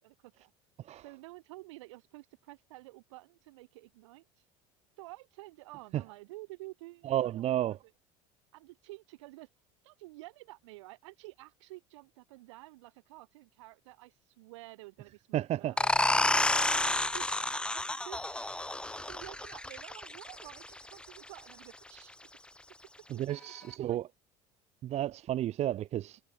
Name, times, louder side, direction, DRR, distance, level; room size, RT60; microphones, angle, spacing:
voice 1, 0.0-0.5 1.0-4.3 5.0-7.8 8.5-9.5 9.8-16.2 16.8-18.6 19.0-22.1 23.1-24.0, right 21 dB, 80° right, 4.9 m, -51 dB
voice 2, 7.0-7.8 15.3-15.8 23.1-24.1 24.8-26.2, right 12 dB, 45° right, 0.9 m, -32 dB
sound 1, 15.8-21.2, left 1 dB, 5° left, 0.9 m, -30 dB
supercardioid pair, 90°, 15 cm